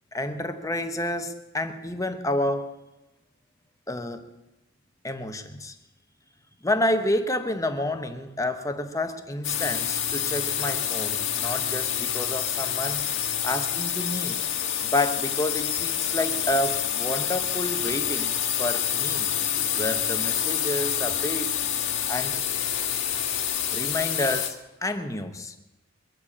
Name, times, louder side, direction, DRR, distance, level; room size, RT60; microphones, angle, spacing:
voice 1, 0.1-2.8 3.9-4.3 5.0-5.8 6.6-13.0 13.4-14.4 14.8-19.3 19.8-21.6 22.1-22.4 23.7-25.5, left 1 dB, 15° left, 8 dB, 1.0 m, -29 dB
sound 1, 9.4-24.5, left 9 dB, 60° left, 1.5 m, -27 dB
22.0 x 7.5 x 8.5 m, 1.0 s
head